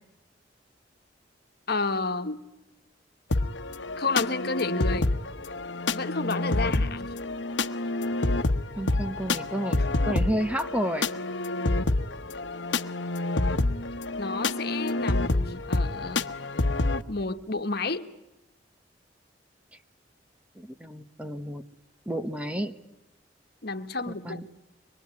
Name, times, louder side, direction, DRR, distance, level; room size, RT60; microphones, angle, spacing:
voice 1, 1.7-2.4 4.0-5.2 5.9-7.1 14.2-16.2 17.1-18.1 23.6-24.5, left 3 dB, 60° left, 7 dB, 1.5 m, -31 dB
sound 1, 3.3-17.0, left 2 dB, 85° left, 1.1 m, -28 dB
voice 2, 8.8-11.1 20.6-21.6 22.1-22.7 24.1-24.5, equal, 5° right, 9 dB, 1.1 m, -31 dB
24.5 x 22.0 x 9.6 m, 0.95 s
head